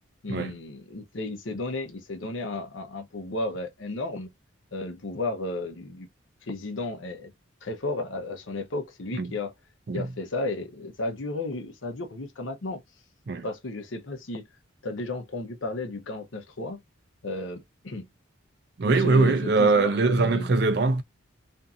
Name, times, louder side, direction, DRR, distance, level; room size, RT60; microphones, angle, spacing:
voice 1, 0.2-4.3 4.7-6.1 6.4-7.3 7.6-9.5 9.9-12.8 13.4-14.5 14.8-16.8 17.2-18.1 18.9-20.5, left 2 dB, 75° left, 0.8 m, -33 dB
voice 2, 18.8-21.0, right 3 dB, 55° right, 0.5 m, -22 dB
2.6 x 2.6 x 2.3 m
head